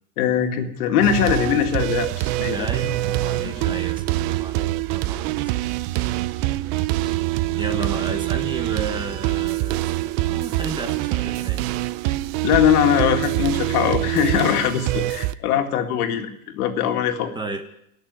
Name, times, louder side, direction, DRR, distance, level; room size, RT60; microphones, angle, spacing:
voice 1, 0.2-2.9 3.4-3.8 12.4-17.3, left 9 dB, 90° left, 5 dB, 2.1 m, -21 dB
sound 1, 1.0-15.3, right 16 dB, 45° right, 0.5 m, -25 dB
voice 2, 2.5-5.4 7.0-7.1 7.5-11.7 17.3-17.6, right 3 dB, 10° right, 7 dB, 0.9 m, -33 dB
19.0 x 6.8 x 9.4 m, 0.77 s
supercardioid pair, 150°, 44 cm